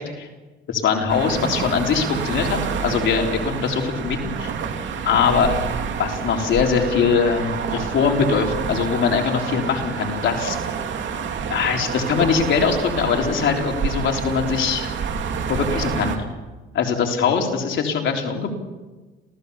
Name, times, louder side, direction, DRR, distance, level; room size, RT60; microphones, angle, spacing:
voice 1, 0.7-4.5 5.0-5.5 6.0-10.6 11.5-14.9 15.5-16.3 16.7-18.5, left 6 dB, 70° left, 2 dB, 3.8 m, -22 dB
sound 1, 1.1-16.2, right 6 dB, 70° right, 2.9 m, -28 dB
27.5 x 17.0 x 7.1 m, 1.2 s
cardioid pair, 90°, 20 cm